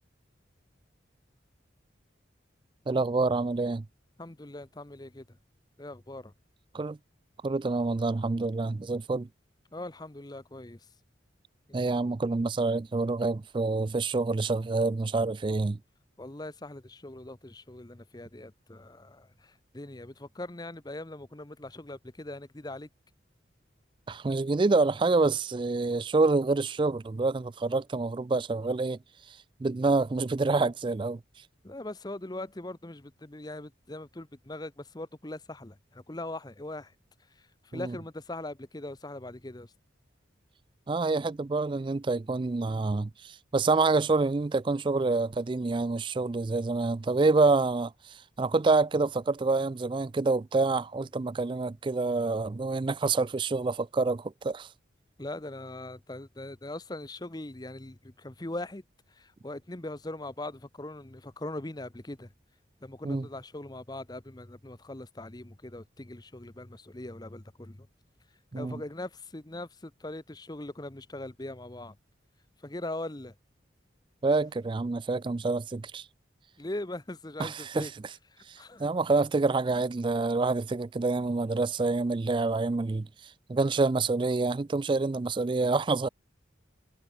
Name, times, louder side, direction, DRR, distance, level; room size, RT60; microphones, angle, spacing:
voice 1, 2.9-3.8 6.7-7.0 7.4-9.3 11.7-15.8 24.1-29.0 29.3-31.2 37.7-37.9 40.9-54.7 63.0-63.3 68.5-68.8 74.2-76.1 77.4-77.9 78.5-83.1 83.5-86.1, right 3 dB, 25° right, 0.3 m, -27 dB
voice 2, 4.2-5.4 5.8-6.3 9.7-10.9 16.2-22.9 31.6-36.9 37.4-39.7 55.2-58.8 59.1-62.3 62.8-67.9 68.5-72.0 72.6-73.3 76.6-77.9 78.3-78.9, left 1 dB, 20° left, 0.9 m, -41 dB
head